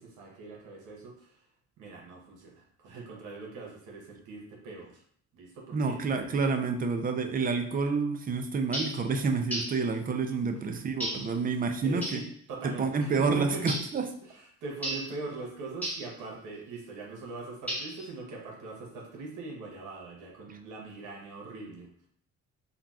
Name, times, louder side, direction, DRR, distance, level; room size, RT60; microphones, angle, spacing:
voice 1, 0.0-1.4 1.8-5.0 5.3-6.0 10.5-10.8 11.8-13.6 14.2-22.1, right 3 dB, 90° right, -1 dB, 1.0 m, -42 dB
voice 2, 5.7-12.2 12.6-14.1, right 4 dB, 30° right, 6 dB, 0.4 m, -29 dB
sound 1, 8.7-9.0 9.5-9.8 11.0-11.3 12.0-12.3 13.7-14.0 14.8-15.1 15.8-16.1 17.7-18.1, right 1 dB, 5° left, 1.0 m, -34 dB
3.8 x 2.3 x 2.3 m, 0.62 s
cardioid pair, 90°, 30 cm